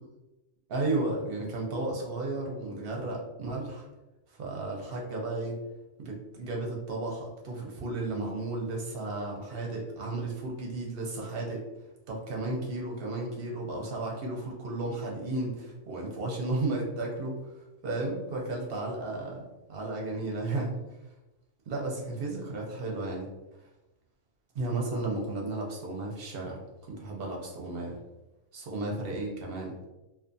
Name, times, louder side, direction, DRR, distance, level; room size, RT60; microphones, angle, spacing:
voice 1, 0.7-3.9 4.4-5.6 6.0-11.6 12.1-17.4 17.8-20.8 21.7-23.3 24.5-26.6 27.0-28.0 28.5-29.8, right 2 dB, 55° right, -1 dB, 0.7 m, -33 dB
2.4 x 2.4 x 2.5 m, 0.99 s
omnidirectional pair, 1.3 m